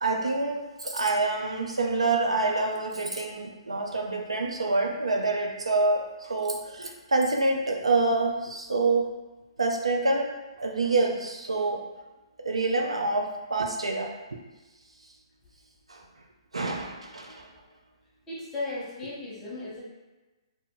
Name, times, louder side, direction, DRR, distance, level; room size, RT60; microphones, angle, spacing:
voice 1, 0.0-9.1 9.6-10.3 10.6-11.8 12.4-14.4 15.9-16.0 16.5-17.5, right 3 dB, 90° right, 1 dB, 0.4 m, -27 dB
voice 2, 18.3-19.8, left 2 dB, 15° left, -6 dB, 0.9 m, -35 dB
2.1 x 2.0 x 3.7 m, 1.1 s
hypercardioid pair, 135°, 3 cm